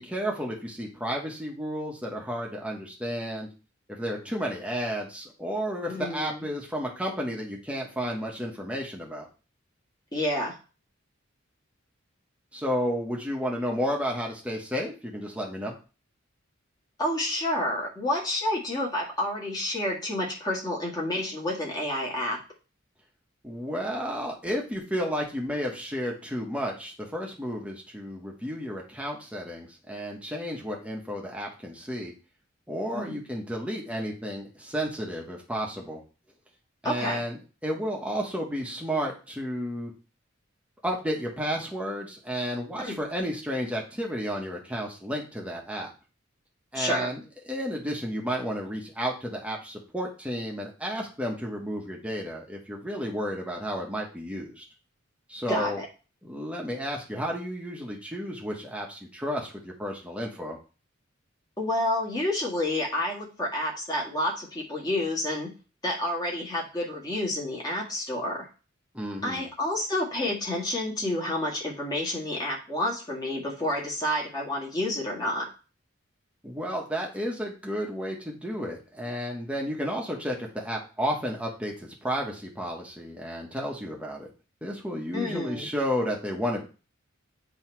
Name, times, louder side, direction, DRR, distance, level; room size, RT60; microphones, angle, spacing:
voice 1, 0.0-3.5 3.9-9.3 12.5-15.7 23.4-32.1 32.7-36.0 36.8-39.9 40.8-45.9 46.7-54.6 55.3-55.8 56.2-60.6 68.9-69.5 76.4-84.3 84.6-86.6, equal, 5° right, -1 dB, 1.2 m, -32 dB
voice 2, 5.8-6.5 10.1-10.6 17.0-22.4 32.9-33.2 36.8-37.2 42.8-43.0 46.7-47.1 55.5-55.9 61.6-65.5 65.8-68.5 69.2-75.5 85.1-85.7, left 1 dB, 20° left, -3 dB, 1.9 m, -29 dB
8.0 x 3.0 x 4.5 m, 0.34 s
head